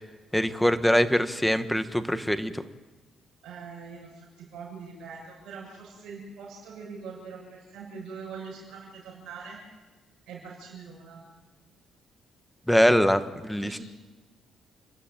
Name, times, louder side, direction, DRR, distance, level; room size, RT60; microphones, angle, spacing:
voice 1, 0.3-2.6 12.7-13.8, equal, 5° left, 10 dB, 1.4 m, -23 dB
voice 2, 3.4-9.6 10.3-11.2 13.6-13.8, right 5 dB, 80° right, -5 dB, 6.8 m, -43 dB
30.0 x 12.5 x 9.1 m, 1.2 s
cardioid pair, 90°, 0 cm